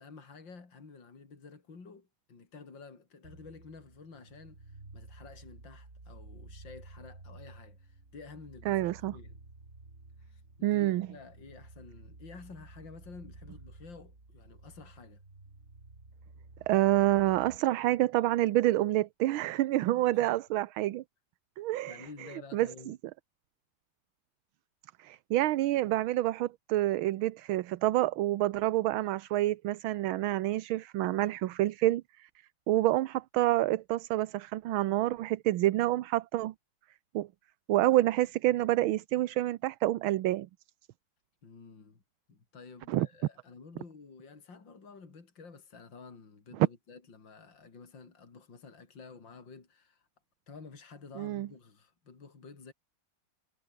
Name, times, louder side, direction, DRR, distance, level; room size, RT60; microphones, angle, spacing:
voice 1, 0.0-9.4 10.2-15.2 20.1-20.4 21.9-23.0 41.4-42.0 42.3-50.1 50.5-52.7, left 4 dB, 60° left, 4.2 m, -51 dB
sound 1, 3.2-17.6, right 2 dB, 35° right, 4.3 m, -52 dB
voice 2, 8.7-9.1 10.6-11.1 16.7-21.0 21.6-22.1 22.5-23.0 25.0-32.3 32.7-36.5 37.1-37.3 37.7-40.5 42.9-43.1 51.2-51.5, right 15 dB, 75° right, 1.5 m, -28 dB
omnidirectional pair, 2.3 m